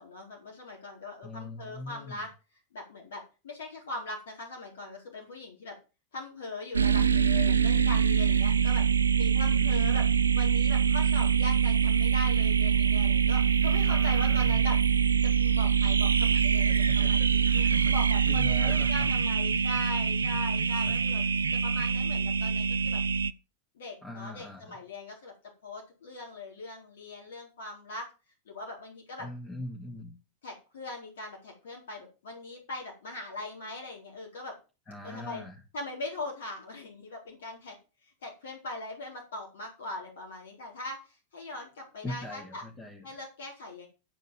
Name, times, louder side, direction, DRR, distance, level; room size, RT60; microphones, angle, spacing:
voice 1, 0.0-2.3 2.7-5.8 6.1-8.8 9.2-10.1 10.3-14.7 15.3-21.2 21.6-23.0 23.7-25.3 25.6-28.1 28.5-29.2 30.4-34.6 35.0-35.4 35.7-37.8 38.2-42.6 43.0-43.9, left 2 dB, 60° left, 0 dB, 4.3 m, -40 dB
voice 2, 1.2-2.2 9.5-10.2 13.9-14.6 16.7-17.9 18.2-19.1 20.3-20.4 20.8-21.0 24.0-24.8 29.2-30.1 34.9-35.6 42.0-43.1, left 1 dB, 15° left, 0 dB, 2.5 m, -41 dB
sound 1, 6.7-23.3, right 7 dB, 75° right, 0.5 m, -24 dB
12.5 x 5.3 x 7.7 m, 0.32 s
figure-of-eight pair, 90°, 0 cm